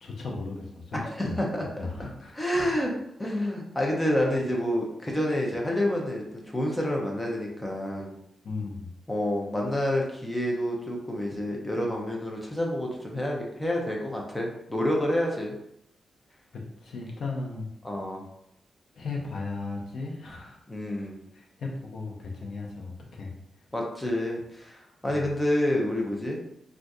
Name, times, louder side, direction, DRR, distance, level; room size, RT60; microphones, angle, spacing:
voice 1, 0.0-1.4 1.8-2.8 3.4-3.5 4.2-4.4 8.4-8.9 16.5-17.7 18.9-20.6 21.3-23.3 25.1-25.3, left 3 dB, 55° left, -1 dB, 0.7 m, -36 dB
voice 2, 0.9-1.7 2.3-2.9 3.2-8.1 9.1-15.6 17.8-18.2 20.7-21.2 23.7-26.4, left 1 dB, 10° left, -1 dB, 0.6 m, -28 dB
2.7 x 2.5 x 3.5 m, 0.75 s
wide cardioid pair, 165°, 0 cm